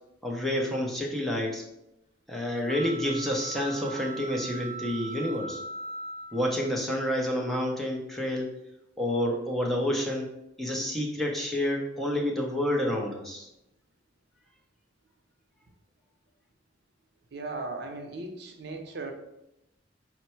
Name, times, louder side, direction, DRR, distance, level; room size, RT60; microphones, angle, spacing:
voice 1, 0.2-1.6 2.3-5.6 6.3-8.5 9.0-10.3 10.6-13.5, left 1 dB, ahead, -2 dB, 0.6 m, -29 dB
sound 1, 2.6-6.7, right 2 dB, 40° left, 0.6 m, -40 dB
voice 2, 17.3-19.1, right 3 dB, 65° right, 4 dB, 0.6 m, -37 dB
4.5 x 2.1 x 4.3 m, 0.87 s
head